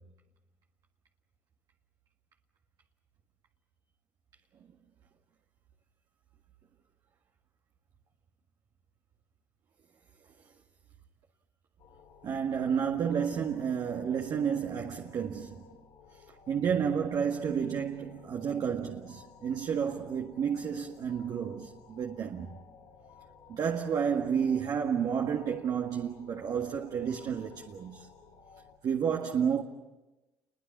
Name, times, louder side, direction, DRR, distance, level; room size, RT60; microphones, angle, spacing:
sound 1, 11.8-28.8, left 6 dB, 70° left, 2.9 m, -56 dB
voice 1, 12.2-15.8 16.5-22.5 23.5-28.1 28.8-29.6, right 7 dB, 55° right, 1.8 m, -31 dB
28.5 x 22.5 x 7.4 m
supercardioid pair, 70°, 8 cm